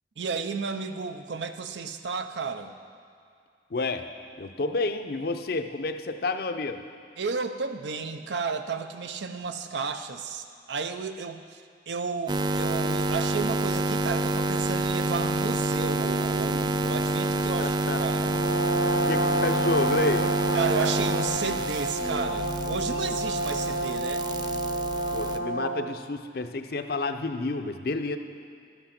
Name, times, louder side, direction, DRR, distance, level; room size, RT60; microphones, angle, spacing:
voice 1, 0.2-2.7 7.2-11.6 11.9-18.3 20.5-24.3, right 5 dB, 80° right, 8 dB, 0.6 m, -33 dB
voice 2, 3.7-4.1 4.4-6.8 17.3-18.0 19.1-20.3 25.1-28.2, left 3 dB, 55° left, 7 dB, 0.6 m, -30 dB
sound 1, 12.3-25.4, right 2 dB, 25° right, 0.3 m, -28 dB
Brass instrument, 18.2-26.0, right 1 dB, 90° left, 0.9 m, -29 dB
12.0 x 8.1 x 5.9 m, 2.4 s
head